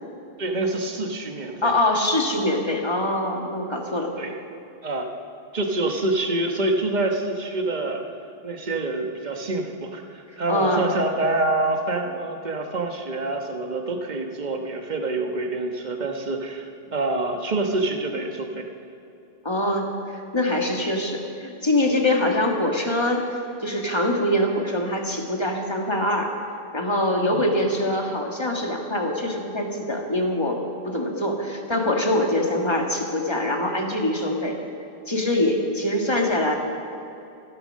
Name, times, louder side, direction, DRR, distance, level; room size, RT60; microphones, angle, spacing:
voice 1, 0.4-1.7 4.2-4.3 4.8-5.1 5.5-8.0 8.4-18.6 27.2-27.5, right 2 dB, 45° right, 4 dB, 1.3 m, -26 dB
voice 2, 1.6-4.1 10.5-10.9 19.4-23.2 23.6-26.3 26.7-30.6 30.9-34.6 35.1-36.6, left 1 dB, 25° left, 1 dB, 1.7 m, -24 dB
14.0 x 13.0 x 6.4 m, 2.7 s
omnidirectional pair, 1.1 m